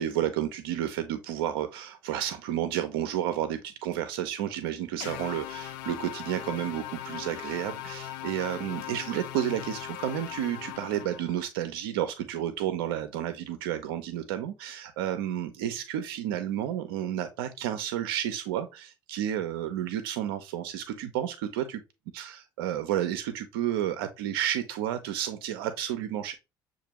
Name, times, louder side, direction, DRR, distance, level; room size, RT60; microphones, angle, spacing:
voice 1, 0.0-21.8 22.1-26.3, right 11 dB, 80° right, 0.5 m, -31 dB
sound 1, 5.0-11.5, left 13 dB, 75° left, 0.4 m, -39 dB
6.6 x 2.5 x 2.9 m
hypercardioid pair, 60°, 12 cm